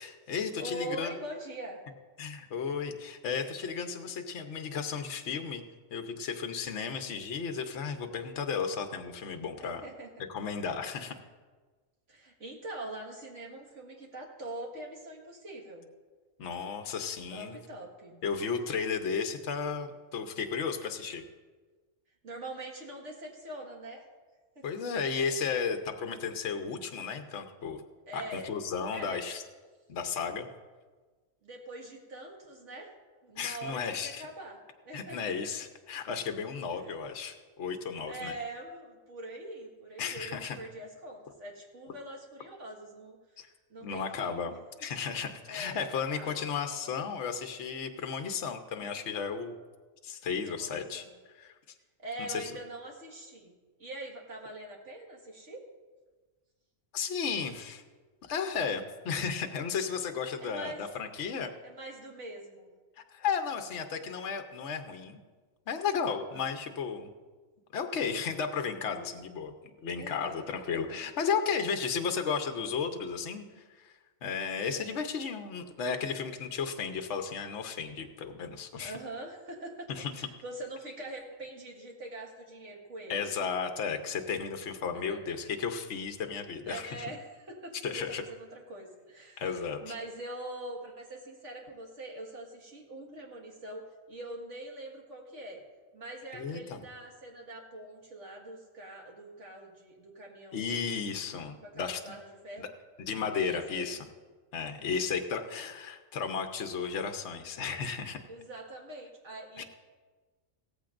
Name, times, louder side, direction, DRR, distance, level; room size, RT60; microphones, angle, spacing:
voice 1, 0.0-1.1 2.2-5.6 5.9-9.8 10.3-11.2 16.4-17.6 18.2-21.2 24.6-27.8 28.1-29.4 29.9-30.5 33.4-34.3 34.9-38.4 40.0-40.6 43.4-43.5 43.8-44.5 44.8-49.5 50.0-51.0 51.4-51.5 52.3-52.4 56.9-57.8 58.2-61.5 63.1-65.2 65.7-67.1 67.7-69.5 69.8-73.4 73.8-73.9 74.2-78.9 79.9-80.1 83.1-86.9 87.8-88.2 89.4-89.9 96.3-96.8 100.5-102.1 102.6-102.7 103.0-104.1 104.5-108.2 109.6-109.7, left 6 dB, 65° left, 6 dB, 1.1 m, -34 dB
voice 2, 0.6-1.8 9.6-10.3 12.1-15.9 17.3-18.2 22.2-24.0 24.6-24.8 28.1-28.5 28.9-29.2 31.4-32.9 33.2-34.6 34.8-35.5 36.7-37.0 38.1-43.2 43.7-44.6 45.5-46.5 50.4-51.1 52.0-53.5 53.8-55.6 60.4-60.8 61.6-62.7 66.3-66.5 70.0-70.5 70.7-71.0 74.7-75.0 78.8-79.9 80.1-83.2 84.9-85.2 86.7-95.6 95.9-101.0 101.6-102.7 103.3-104.1 104.8-105.7 108.3-109.6, right 1 dB, 65° right, -1 dB, 2.1 m, -43 dB
17.0 x 14.5 x 2.5 m, 1.4 s
omnidirectional pair, 1.4 m